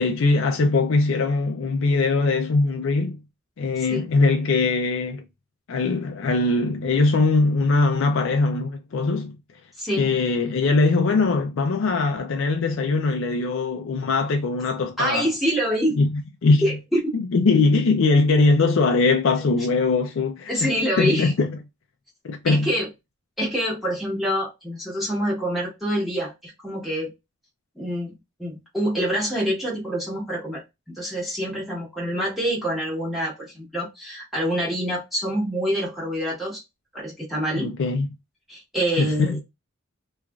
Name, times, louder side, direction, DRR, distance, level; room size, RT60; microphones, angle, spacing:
voice 1, 0.0-3.2 3.6-5.2 5.7-9.4 9.9-15.3 16.0-16.1 16.4-16.8 17.2-20.7 21.0-21.5 22.2-22.7 37.6-38.1 39.0-39.4, left 3 dB, 65° left, 0.4 m, -21 dB
voice 2, 15.0-15.9 16.6-17.2 19.8-19.9 20.5-21.3 22.5-22.9 23.4-27.1 27.8-28.1 28.4-30.6 31.0-36.6 36.9-37.7 38.5-39.4, equal, ahead, 1.1 m, -26 dB
3.1 x 2.4 x 2.3 m
head